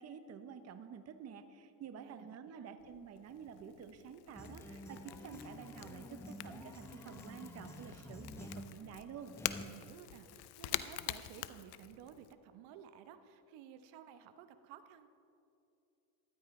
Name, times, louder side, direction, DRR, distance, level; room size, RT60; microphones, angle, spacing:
voice 1, 0.0-9.3, right 7 dB, 35° right, 9 dB, 0.8 m, -50 dB
voice 2, 2.0-2.8 9.6-15.1, right 9 dB, 70° right, 10 dB, 1.0 m, -55 dB
Crackle / Crack, 2.8-12.3, left 15 dB, 55° left, 0.6 m, -46 dB
sound 1, 4.3-9.7, left 1 dB, 5° left, 0.9 m, -50 dB
14.0 x 13.0 x 3.2 m, 2.7 s
supercardioid pair, 100°, 47 cm